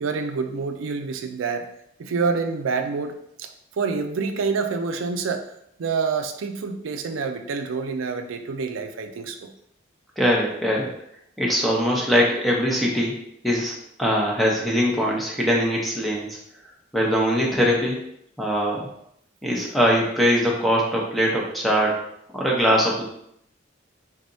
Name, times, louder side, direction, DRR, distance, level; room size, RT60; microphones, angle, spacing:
voice 1, 0.0-1.7 2.0-5.5 5.8-9.5, right 4 dB, 90° right, 6 dB, 0.4 m, -27 dB
voice 2, 10.2-10.9 11.4-13.1 13.4-13.7 14.0-16.4 16.9-18.0 18.4-18.9 19.4-22.1 22.3-23.0, equal, ahead, -3 dB, 0.7 m, -21 dB
3.8 x 3.4 x 2.6 m, 0.73 s
head